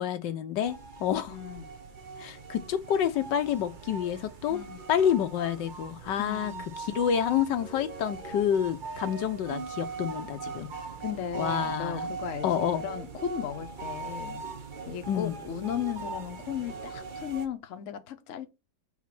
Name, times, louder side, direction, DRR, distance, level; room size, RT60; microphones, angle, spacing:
voice 1, 0.0-1.3 2.2-4.6 4.9-6.5 6.8-10.7 11.3-12.1 12.4-12.8 15.1-15.4, left 9 dB, 80° left, 1.4 m, -28 dB
sound 1, 0.6-17.5, right 4 dB, 40° right, 0.7 m, -40 dB
voice 2, 1.3-1.6 4.5-4.8 6.2-6.7 11.0-14.4 14.9-18.5, left 9 dB, 55° left, 1.0 m, -36 dB
7.3 x 4.1 x 5.9 m
omnidirectional pair, 1.9 m